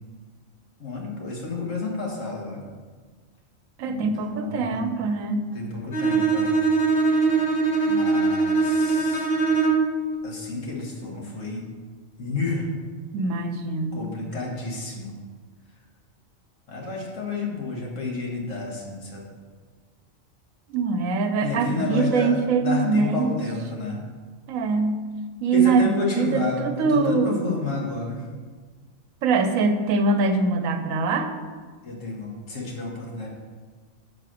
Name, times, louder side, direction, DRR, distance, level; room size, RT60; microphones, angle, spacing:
voice 1, 0.8-2.6 3.8-4.9 5.5-6.6 7.8-9.3 10.2-11.6 12.2-12.7 13.9-15.1 16.7-19.2 21.4-24.0 25.5-28.3 31.8-33.3, left 3 dB, 65° left, -2 dB, 1.7 m, -30 dB
voice 2, 3.8-5.4 13.1-14.0 20.7-23.3 24.5-24.9 25.4-27.5 29.2-31.3, right 4 dB, 80° right, 7 dB, 1.0 m, -23 dB
Bowed string instrument, 5.9-10.0, right 4 dB, 50° left, 1.1 m, -21 dB
5.7 x 4.8 x 6.2 m, 1.5 s
omnidirectional pair, 1.4 m